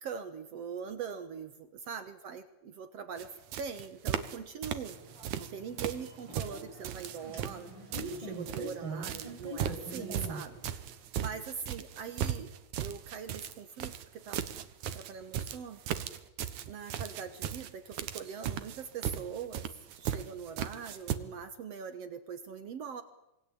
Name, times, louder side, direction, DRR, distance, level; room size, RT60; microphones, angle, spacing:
voice 1, 0.0-5.0 5.4-7.7 8.2-10.6 11.2-12.5 12.8-14.4 14.9-15.8 16.7-19.6 19.9-23.0, right 6 dB, 60° right, 10 dB, 2.2 m, -42 dB
sound 1, 3.2-3.3 3.5-4.4 4.6-5.5 5.8-8.7 9.0-21.2, right 10 dB, 80° right, 2.7 m, -37 dB
sound 2, 4.8-10.9, right 2 dB, 40° right, 7.6 m, -44 dB
27.0 x 20.5 x 8.7 m, 0.93 s
omnidirectional pair, 3.4 m